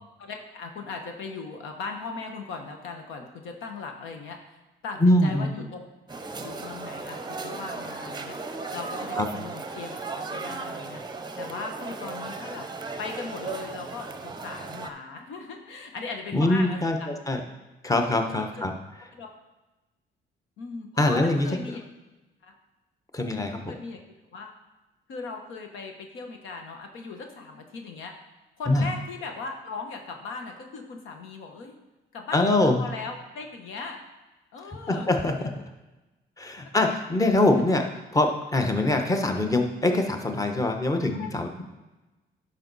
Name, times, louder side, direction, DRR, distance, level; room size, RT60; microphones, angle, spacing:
voice 1, 0.2-4.6 4.8-5.8 6.3-11.0 11.4-12.7 13.0-17.1 18.4-18.7 19.1-19.3 20.6-21.8 22.4-22.5 23.7-24.0 24.3-24.5 25.1-28.1 28.6-31.8 32.1-34.0 34.5-35.1 41.0-41.3, left 4 dB, 90° left, 4 dB, 1.2 m, -38 dB
voice 2, 5.0-5.4 9.2-9.3 16.3-17.4 17.8-18.7 21.0-21.5 23.1-23.7 28.7-28.8 32.3-32.8 34.9-35.5 36.4-37.8 38.1-41.6, left 2 dB, 15° left, 4 dB, 1.0 m, -23 dB
sound 1, 6.1-14.9, right 3 dB, 20° right, 0.7 m, -36 dB
11.0 x 5.4 x 4.1 m, 1.1 s
cardioid pair, 90°, 20 cm